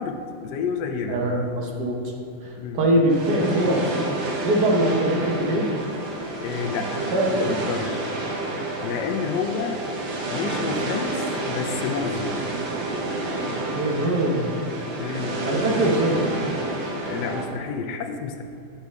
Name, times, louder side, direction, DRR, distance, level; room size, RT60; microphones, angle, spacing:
voice 1, 0.0-1.2 2.6-2.8 6.4-8.1 8.8-9.9 10.3-12.4 15.0-15.5 17.1-18.4, left 5 dB, 70° left, 4 dB, 1.1 m, -30 dB
voice 2, 1.1-2.1 2.4-3.9 4.4-5.7 7.1-7.6 13.7-14.5 15.5-16.3, right 1 dB, 60° right, -1 dB, 1.5 m, -22 dB
sound 1, 3.1-17.5, right 2 dB, 85° right, 1.7 m, -29 dB
8.5 x 5.6 x 3.5 m, 2.6 s
omnidirectional pair, 2.1 m